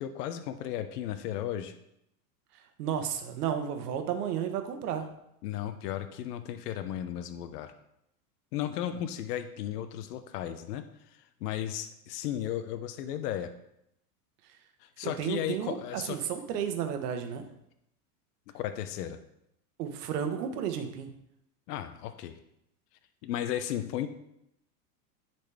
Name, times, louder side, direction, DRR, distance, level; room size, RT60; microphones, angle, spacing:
voice 1, 0.0-1.7 5.4-7.7 8.5-13.5 14.8-16.2 18.5-19.2 21.7-22.4 23.2-24.1, left 11 dB, 75° left, 9 dB, 0.8 m, -35 dB
voice 2, 2.8-5.1 15.2-17.4 19.8-21.1, right 8 dB, 75° right, 7 dB, 1.1 m, -32 dB
9.8 x 4.2 x 3.4 m, 0.79 s
supercardioid pair, 115°, 47 cm